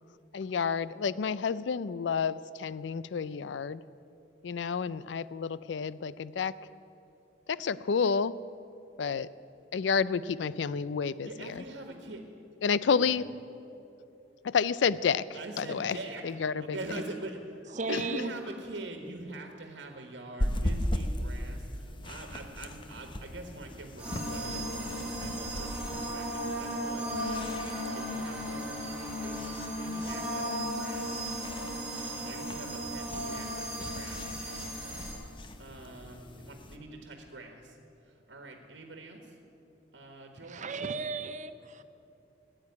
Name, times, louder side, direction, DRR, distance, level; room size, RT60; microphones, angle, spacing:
voice 1, 0.3-3.8 4.4-6.6 7.5-8.4 9.0-9.3 9.7-11.6 12.6-13.3 14.4-16.0 16.2-16.8 17.9-18.0, left 6 dB, 75° left, 18 dB, 0.4 m, -30 dB
voice 2, 11.2-12.2 13.0-13.2 15.3-16.2 16.6-17.4 17.9-31.1 32.2-34.7 35.6-37.8 38.1-39.3 39.9-40.7, right 2 dB, 80° right, 4 dB, 1.5 m, -44 dB
voice 3, 17.7-18.3 40.4-41.8, right 4 dB, 45° right, 11 dB, 0.7 m, -35 dB
sound 1, 20.4-36.8, equal, 30° left, 0.9 m, -39 dB
sound 2, 24.0-35.1, equal, 5° right, 3.6 m, -36 dB
14.5 x 8.9 x 9.5 m, 2.7 s
head